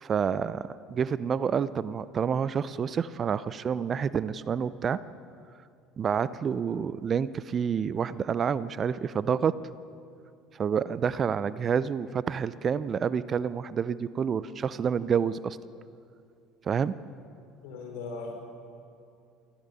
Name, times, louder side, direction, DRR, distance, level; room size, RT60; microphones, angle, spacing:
voice 1, 0.0-5.0 6.0-9.5 10.5-15.6 16.6-16.9, right 7 dB, 40° right, 17 dB, 0.6 m, -28 dB
voice 2, 17.6-18.3, left 4 dB, 70° left, 2 dB, 4.7 m, -38 dB
24.5 x 16.0 x 7.0 m, 2.5 s
hypercardioid pair, 65°, 0 cm